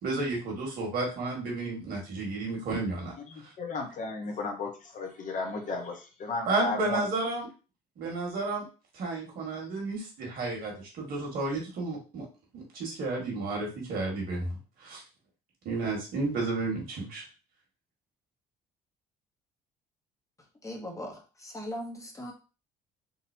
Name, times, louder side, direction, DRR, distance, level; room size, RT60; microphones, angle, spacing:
voice 1, 0.0-3.1 6.5-7.5 8.0-8.6 8.9-12.3 12.5-14.5 14.8-15.0 15.6-17.2, right 3 dB, 65° right, -1 dB, 1.7 m, -32 dB
voice 2, 3.3-7.1, left 3 dB, 50° left, 3 dB, 1.0 m, -34 dB
voice 3, 20.6-22.3, equal, 20° left, 1 dB, 1.0 m, -39 dB
3.9 x 2.8 x 2.7 m, 0.33 s
cardioid pair, 110°, 17 cm